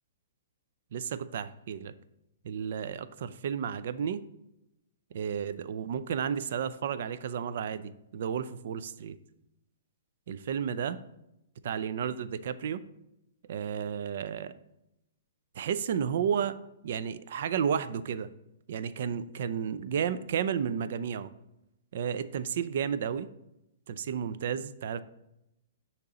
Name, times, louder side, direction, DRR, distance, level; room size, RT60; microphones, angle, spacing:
voice 1, 0.9-1.9 2.4-4.2 5.1-9.2 10.3-11.0 11.6-12.8 13.5-14.5 15.6-16.6 16.8-18.3 18.7-21.3 21.9-23.3 23.9-25.0, right 8 dB, 60° right, 14 dB, 0.4 m, -32 dB
6.6 x 3.0 x 5.0 m, 0.86 s
hypercardioid pair, 140°, 0 cm